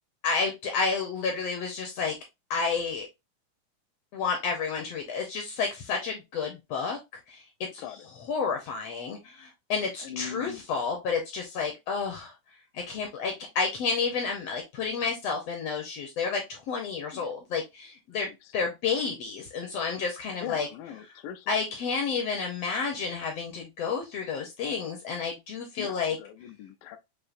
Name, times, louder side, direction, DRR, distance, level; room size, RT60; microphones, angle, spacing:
voice 1, 0.2-2.2 2.5-3.1 4.1-7.0 7.3-7.4 7.7-12.3 12.7-20.7 21.0-21.1 21.5-26.2, left 5 dB, 75° left, 1.6 m, -30 dB
voice 2, 10.0-10.7 17.1-17.3 18.2-18.3 20.4-21.5 25.8-27.0, left 9 dB, 90° left, 2.1 m, -41 dB
6.5 x 2.6 x 2.5 m
omnidirectional pair, 3.5 m